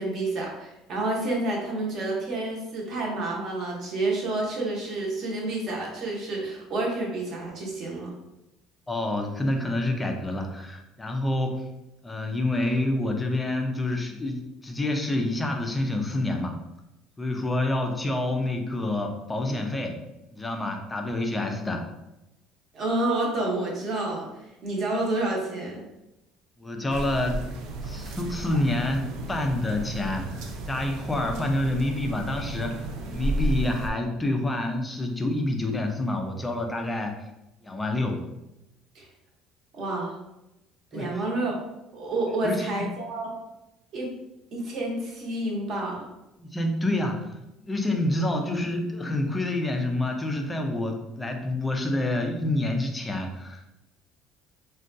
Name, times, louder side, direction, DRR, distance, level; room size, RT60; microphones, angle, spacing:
voice 1, 0.0-8.1 22.7-25.8 38.9-39.1 39.7-40.1 40.9-41.6 41.9-43.3 43.9-44.1 44.5-46.0, right 2 dB, 40° right, -2 dB, 0.7 m, -29 dB
voice 2, 8.9-11.7 12.0-16.6 17.2-20.0 20.3-21.8 26.6-37.3 37.6-38.3 40.9-41.2 42.4-42.9 46.4-53.7, left 1 dB, 10° left, 3 dB, 0.3 m, -28 dB
sound 1, 26.9-33.9, right 2 dB, 60° right, 0.4 m, -33 dB
3.6 x 2.2 x 2.5 m, 0.93 s
cardioid pair, 175°, 0 cm